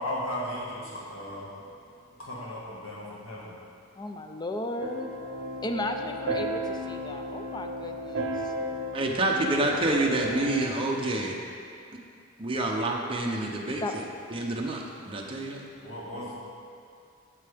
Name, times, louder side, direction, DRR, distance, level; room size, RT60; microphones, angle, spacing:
voice 1, 0.0-3.6 15.8-16.4, left 1 dB, 85° left, -5 dB, 1.8 m, -36 dB
voice 2, 4.0-5.1 5.6-8.5 13.8-13.9, left 1 dB, 20° left, 5 dB, 0.4 m, -35 dB
sound 1, 4.8-10.6, equal, 65° right, 0.8 m, -34 dB
voice 3, 8.9-11.3 12.4-15.6, right 2 dB, 25° right, -1 dB, 0.8 m, -28 dB
8.1 x 7.6 x 3.5 m, 2.4 s
head